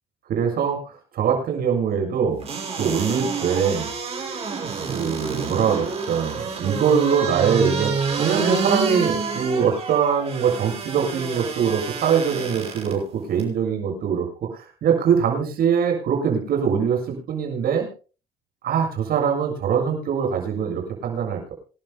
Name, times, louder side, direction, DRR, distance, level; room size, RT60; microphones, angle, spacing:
voice 1, 0.3-2.4 2.7-3.9 4.9-13.0 13.3-14.3 14.5-17.9 18.6-21.5, right 7 dB, 65° right, 1 dB, 7.2 m, -23 dB
sound 1, 2.4-12.9 13.4-13.5, right 5 dB, 35° right, 5.9 m, -28 dB
27.0 x 12.0 x 2.2 m, 0.36 s
cardioid pair, 110°, 17 cm